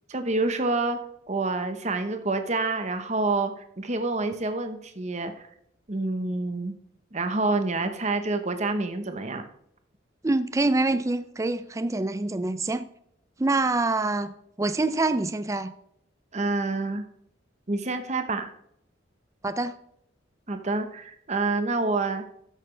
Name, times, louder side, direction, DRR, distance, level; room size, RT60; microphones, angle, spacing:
voice 1, 0.1-1.0 1.3-5.5 5.9-6.7 7.1-9.4 16.3-17.0 17.7-18.5 20.5-22.2, right 3 dB, 35° right, 0.9 m, -27 dB
voice 2, 10.2-12.9 13.4-15.7 19.4-19.8, right 2 dB, 15° right, 0.4 m, -26 dB
13.0 x 6.6 x 3.3 m
head